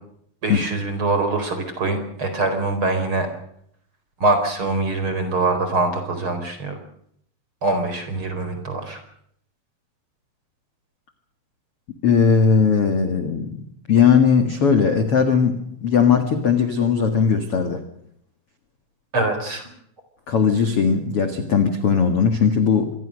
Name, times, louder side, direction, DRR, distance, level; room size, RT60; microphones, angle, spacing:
voice 1, 0.4-3.3 4.2-6.8 7.6-9.0 19.1-19.7, right 2 dB, 30° right, 7 dB, 4.7 m, -23 dB
voice 2, 12.0-13.6 13.9-17.8 20.3-22.9, left 6 dB, 50° left, 7 dB, 1.9 m, -18 dB
26.5 x 21.5 x 6.5 m, 0.69 s
omnidirectional pair, 5.3 m